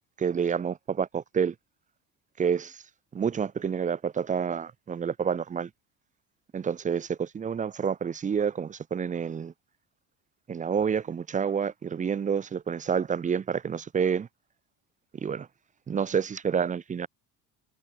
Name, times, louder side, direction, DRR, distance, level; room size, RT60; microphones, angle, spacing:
voice 1, 0.2-1.5 2.4-2.8 3.1-5.7 6.5-9.5 10.5-14.3 15.2-15.5 15.9-17.1, right 7 dB, 20° right, 0.4 m, -28 dB
supercardioid pair, 75°, 43 cm